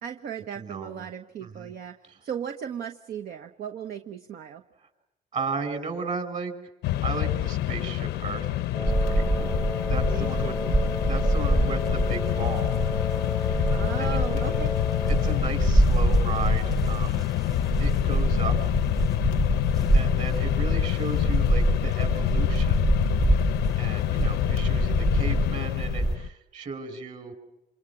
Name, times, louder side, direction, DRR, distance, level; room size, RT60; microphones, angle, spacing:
voice 1, 0.0-4.6 10.1-10.9 13.7-14.7, right 8 dB, 60° right, 6 dB, 1.3 m, -36 dB
voice 2, 0.5-1.1 1.4-1.7 5.3-6.5 7.0-9.6 9.8-10.5 11.0-12.7 13.4-13.7 14.0-14.6 15.2-17.2 17.8-18.5 19.2-19.3 19.9-22.9 23.8-27.3, right 4 dB, 45° right, 6 dB, 6.5 m, -35 dB
Mechanisms, 6.8-26.3, left 14 dB, 85° left, 0.8 m, -27 dB
Wind instrument woodwind instrument, 8.7-15.5, left 1 dB, ahead, 0.9 m, -34 dB
sound 1, 8.9-26.2, right 2 dB, 20° right, 1.6 m, -26 dB
27.5 x 27.5 x 6.2 m, 0.92 s
cardioid pair, 110°, 17 cm